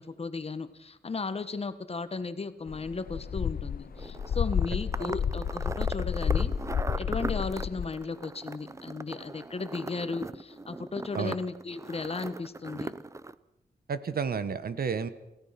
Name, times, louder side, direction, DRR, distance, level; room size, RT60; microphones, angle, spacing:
voice 1, 0.0-6.5 7.0-12.9, left 4 dB, 35° left, 11 dB, 1.4 m, -35 dB
sound 1, 2.7-7.9, left 7 dB, 60° left, 0.7 m, -30 dB
sound 2, 4.0-13.3, right 2 dB, 20° right, 0.6 m, -39 dB
voice 2, 13.9-15.1, right 6 dB, 65° right, 13 dB, 1.3 m, -31 dB
28.5 x 16.0 x 5.9 m, 0.97 s
wide cardioid pair, 130°, 17 cm